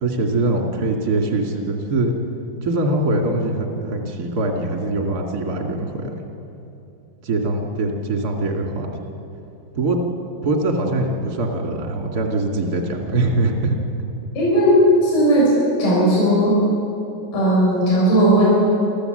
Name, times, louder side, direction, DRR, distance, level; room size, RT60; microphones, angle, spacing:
voice 1, 0.0-2.1 2.6-6.2 7.2-8.9 9.7-10.0 10.4-13.8, right 2 dB, 35° right, 1 dB, 1.6 m, -22 dB
voice 2, 14.3-15.5 15.8-16.6 17.3-18.5, right 1 dB, 55° left, -7 dB, 8.4 m, -16 dB
29.0 x 13.5 x 7.9 m, 2.9 s
omnidirectional pair, 5.0 m